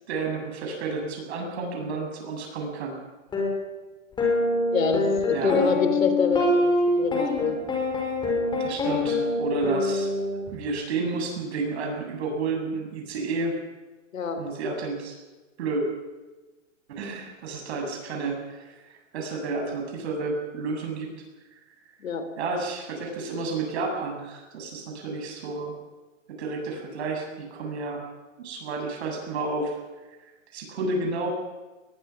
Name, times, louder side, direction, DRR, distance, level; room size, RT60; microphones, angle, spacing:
voice 1, 0.1-3.0 5.3-5.6 8.6-10.1 10.5-13.6 14.4-15.2 15.6-15.8 16.9-21.1 21.5-21.6 22.4-25.7 26.3-28.0 28.4-29.8 30.2-31.3, right 3 dB, 55° right, 2 dB, 7.7 m, -31 dB
sound 1, 3.3-3.5 4.2-10.5, left 2 dB, 10° left, 5.4 m, -25 dB
voice 2, 4.7-7.6 14.1-14.4 22.0-22.2, left 5 dB, 80° left, 9 dB, 3.7 m, -26 dB
22.0 x 20.5 x 6.0 m, 1.2 s
hypercardioid pair, 155°, 39 cm